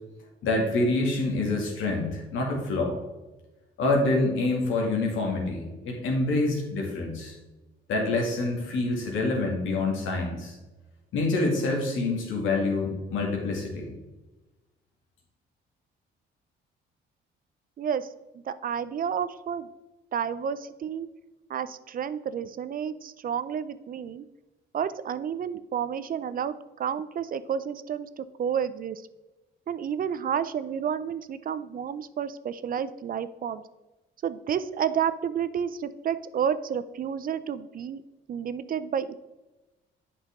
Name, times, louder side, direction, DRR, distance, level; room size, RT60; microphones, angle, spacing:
voice 1, 0.4-3.0 3.8-7.3 7.9-10.5 11.1-13.9, left 2 dB, 80° left, 0 dB, 2.2 m, -26 dB
voice 2, 17.8-18.1 18.5-19.7 20.1-21.1 21.5-24.2 24.7-29.0 29.7-33.6 34.2-38.0 38.3-39.1, right 8 dB, 45° right, 14 dB, 0.4 m, -30 dB
8.1 x 5.6 x 3.7 m, 1.1 s
cardioid pair, 90°, 20 cm